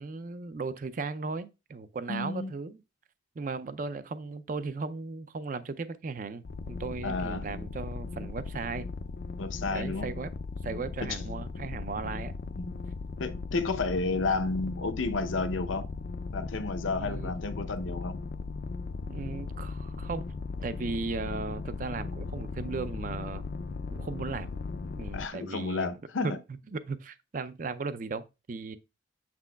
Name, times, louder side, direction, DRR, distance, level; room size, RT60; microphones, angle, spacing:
voice 1, 0.0-2.8 3.4-8.9 9.5-10.3 10.6-12.4 17.0-17.3 19.1-20.3 20.6-23.5 23.9-24.5 25.0-25.9 26.2-26.4 26.7-28.8, right 4 dB, 45° right, 0.4 m, -36 dB
voice 2, 2.1-2.6 7.0-7.4 9.4-10.1 11.0-11.1 12.5-12.8 13.2-15.8 16.3-18.2 25.1-26.4, left 3 dB, 90° left, 0.7 m, -31 dB
sound 1, 6.4-25.3, left 4 dB, 55° left, 0.3 m, -37 dB
7.4 x 6.0 x 2.2 m
head